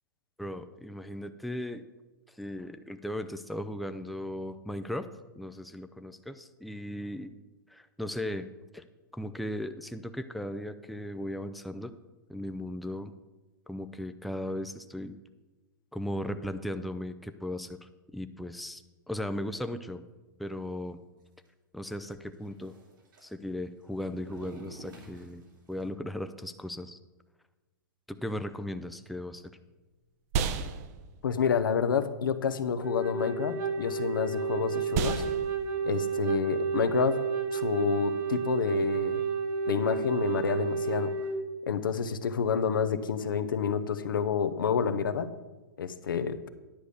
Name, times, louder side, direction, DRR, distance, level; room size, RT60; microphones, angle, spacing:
voice 1, 0.4-1.8 2.3-5.1 5.4-7.3 7.7-8.5 8.7-8.8 9.1-11.9 12.3-13.1 13.7-15.2 15.9-20.0 20.4-21.0 21.7-22.7 23.2-25.4 25.7-27.0 28.1-29.5, left 1 dB, ahead, 9 dB, 0.4 m, -37 dB
sound 1, 21.2-21.3 21.4-21.5 22.1-23.2 23.8-25.8, right 3 dB, 75° right, 2.8 m, -49 dB
sound 2, 29.0-38.6, right 6 dB, 50° right, 0.8 m, -37 dB
voice 2, 31.2-35.2 35.8-37.2 37.5-39.2 39.7-41.1 41.7-45.3 45.8-46.5, left 7 dB, 85° left, 11 dB, 0.7 m, -29 dB
Wind instrument woodwind instrument, 32.8-41.4, right 5 dB, 30° right, 1.0 m, -31 dB
10.0 x 5.0 x 6.9 m, 1.2 s
hypercardioid pair, 125°, 11 cm